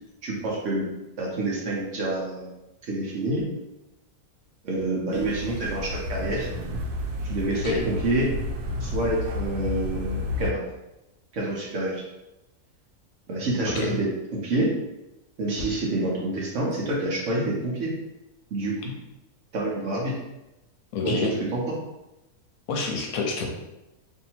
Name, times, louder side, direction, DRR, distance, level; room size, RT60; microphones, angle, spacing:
voice 1, 0.2-0.9 1.2-2.5 2.9-3.4 4.6-6.5 7.2-8.3 8.8-10.6 11.3-12.0 13.3-14.7 15.4-17.9 18.5-18.7 19.5-20.1 21.0-21.6, right 2 dB, 60° right, -3 dB, 1.1 m, -27 dB
sound 1, 5.1-10.5, left 1 dB, 90° right, 1.1 m, -31 dB
voice 2, 13.7-14.0 20.9-21.3 22.7-23.5, left 4 dB, 75° left, 2 dB, 1.0 m, -28 dB
2.7 x 2.7 x 4.2 m, 0.95 s
omnidirectional pair, 1.6 m